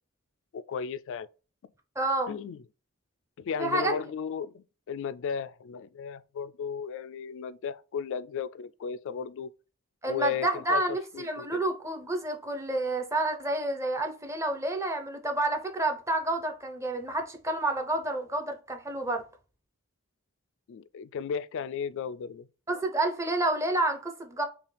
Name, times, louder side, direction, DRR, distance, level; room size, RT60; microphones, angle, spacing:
voice 1, 0.5-1.3 2.3-2.6 3.4-9.5 10.0-11.6 20.7-22.5, left 7 dB, 60° left, 0.3 m, -35 dB
voice 2, 2.0-2.3 3.6-4.0 10.0-19.2 22.7-24.4, right 2 dB, 15° right, 0.7 m, -29 dB
5.5 x 2.3 x 3.3 m
head